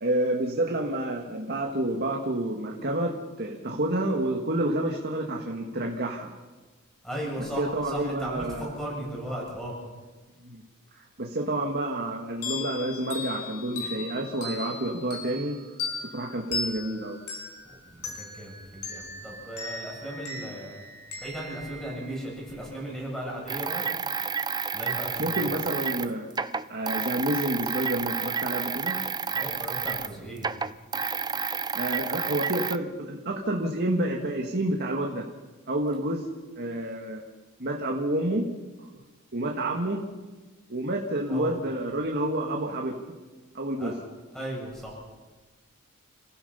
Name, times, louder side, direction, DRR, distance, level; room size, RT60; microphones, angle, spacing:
voice 1, 0.0-6.3 7.4-8.7 10.4-10.6 10.9-15.6 16.0-17.2 25.2-26.3 26.7-29.0 31.7-35.3 35.7-36.3 36.6-37.2 37.6-38.5 38.8-38.9 39.3-40.0 40.7-43.0 43.5-44.0, right 1 dB, 45° right, 1 dB, 1.9 m, -29 dB
voice 2, 7.0-9.8 17.9-20.8 21.2-23.8 24.7-25.6 29.3-30.5 41.3-41.6 43.8-43.9 44.3-45.0, equal, ahead, -3 dB, 7.9 m, -36 dB
sound 1, 12.4-22.7, left 3 dB, 85° left, 6.0 m, -38 dB
sound 2, 23.5-30.1 30.4-32.8, right 6 dB, 20° right, 0.5 m, -30 dB
29.5 x 16.0 x 5.7 m, 1.3 s
head